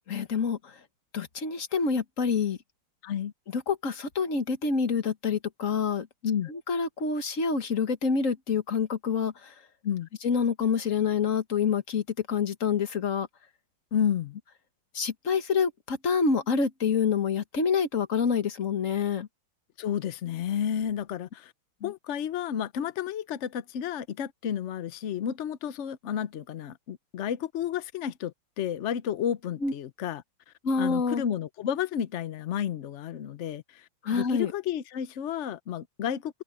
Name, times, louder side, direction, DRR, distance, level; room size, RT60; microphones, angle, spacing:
voice 1, 0.1-0.8 1.1-2.6 3.5-6.1 6.5-9.5 10.2-13.3 14.9-19.3 21.8-21.9 29.6-29.7 30.6-31.2 34.0-34.5, left 5 dB, 40° left, 1.7 m, -27 dB
voice 2, 13.9-14.4 19.8-21.5 21.8-30.2 30.8-36.4, left 9 dB, 85° left, 0.6 m, -31 dB
omnidirectional pair, 2.2 m